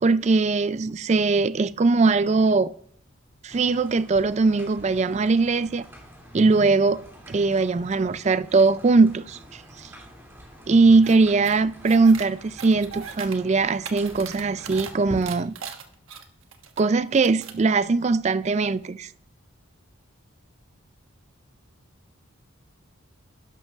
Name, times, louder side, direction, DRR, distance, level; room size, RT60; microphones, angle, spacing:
voice 1, 0.0-2.7 3.4-5.9 6.3-9.9 10.7-15.5 16.8-19.1, right 3 dB, 30° right, 0.3 m, -21 dB
sound 1, 3.5-15.3, equal, 10° right, 2.7 m, -46 dB
sound 2, 11.0-11.2 11.4-12.3 12.6-13.4 13.7-14.9 15.2-16.8 17.1-17.6, right 7 dB, 70° right, 1.3 m, -39 dB
12.5 x 11.5 x 2.4 m
head